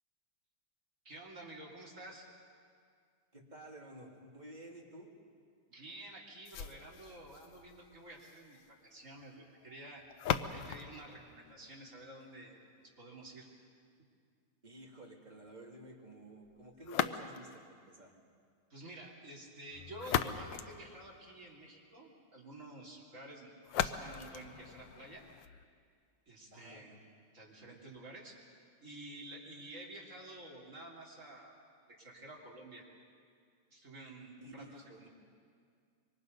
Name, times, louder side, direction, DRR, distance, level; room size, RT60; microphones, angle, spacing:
voice 1, 1.0-2.3 5.7-10.0 10.5-12.6 13.0-13.5 18.7-25.2 26.3-27.0 27.3-28.4 28.8-31.5 31.9-32.8 33.7-35.1, right 1 dB, 35° right, -4 dB, 3.8 m, -50 dB
voice 2, 3.3-5.1 14.6-18.1 26.5-26.8 34.4-35.1, right 1 dB, 20° right, -1 dB, 2.4 m, -52 dB
sound 1, 6.5-12.4 16.8-17.7 19.7-21.6 23.6-25.6, left 9 dB, 70° left, 1.3 m, -39 dB
25.5 x 24.0 x 5.4 m, 2.2 s
omnidirectional pair, 2.4 m